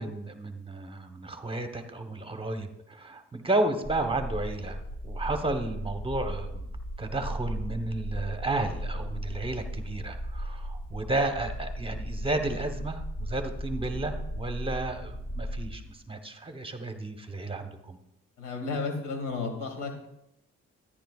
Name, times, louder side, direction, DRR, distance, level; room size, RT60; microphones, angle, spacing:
voice 1, 0.0-6.7 7.0-18.0, right 2 dB, 20° right, 6 dB, 1.1 m, -32 dB
sound 1, 3.8-15.8, equal, 45° left, 4.1 m, -36 dB
voice 2, 18.4-20.1, left 4 dB, 90° left, 3 dB, 2.3 m, -33 dB
13.5 x 10.0 x 2.4 m, 0.81 s
cardioid pair, 90°, 30 cm